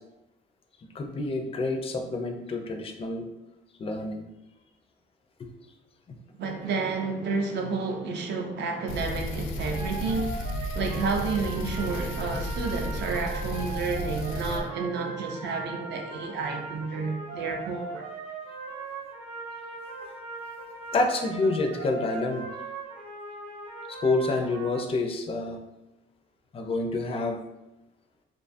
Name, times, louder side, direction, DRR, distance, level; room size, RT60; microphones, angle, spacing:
voice 1, 0.9-3.3 3.8-4.3 5.4-5.5 6.1-6.2 20.9-22.5 23.9-25.6 26.5-27.4, left 2 dB, 30° left, 4 dB, 0.4 m, -28 dB
voice 2, 6.3-10.4 10.7-18.1, right 4 dB, 65° right, 3 dB, 0.5 m, -30 dB
sound 1, 8.9-14.6, left 1 dB, 90° left, 0.4 m, -33 dB
sound 2, 9.7-24.8, right 4 dB, 85° right, 0.9 m, -39 dB
2.6 x 2.3 x 2.5 m, 0.93 s
cardioid pair, 90°, 20 cm